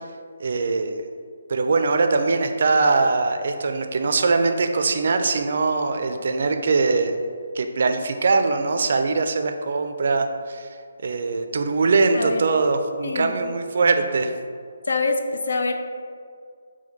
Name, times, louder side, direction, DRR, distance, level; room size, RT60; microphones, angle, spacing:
voice 1, 0.4-1.0 1.5-7.2 7.5-10.7 11.0-14.3, right 3 dB, 60° right, 6 dB, 0.4 m, -22 dB
voice 2, 13.0-13.4 14.9-15.7, left 3 dB, 70° left, 5 dB, 0.4 m, -25 dB
4.4 x 2.2 x 4.2 m, 2.1 s
figure-of-eight pair, 150°, 0 cm